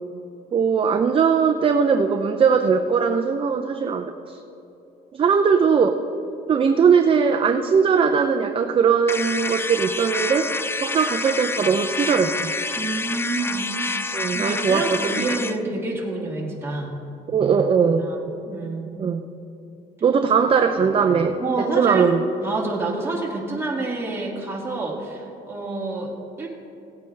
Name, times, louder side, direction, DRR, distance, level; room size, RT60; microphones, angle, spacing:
voice 1, 0.5-4.4 5.1-6.0 6.5-10.5 10.8-12.5 14.1-15.2 17.3-18.1 19.0-19.2 20.0-22.2, right 6 dB, 35° right, 6 dB, 0.6 m, -20 dB
sound 1, 9.1-15.6, left 3 dB, 15° left, 0.4 m, -28 dB
voice 2, 12.8-13.7 14.3-16.9 17.8-19.1 21.4-22.1 22.4-26.5, right 3 dB, 15° right, -3 dB, 2.3 m, -28 dB
17.0 x 8.9 x 3.4 m, 2.9 s
cardioid pair, 110°, 17 cm